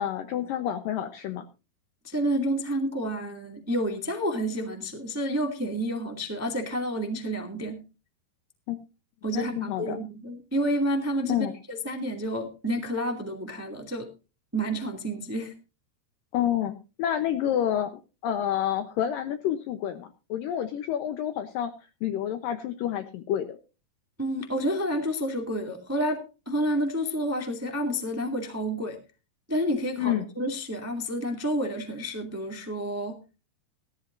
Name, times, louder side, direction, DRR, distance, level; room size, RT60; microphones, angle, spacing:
voice 1, 0.0-1.4 8.7-8.8 9.3-10.0 11.3-11.6 16.3-21.7 22.0-23.6 30.0-30.3, left 10 dB, 70° left, 8 dB, 2.4 m, -29 dB
voice 2, 2.0-7.8 9.2-14.1 14.5-15.5 24.2-29.0 29.5-33.2, equal, 5° right, 4 dB, 1.3 m, -29 dB
17.5 x 13.5 x 2.6 m, 0.31 s
omnidirectional pair, 4.5 m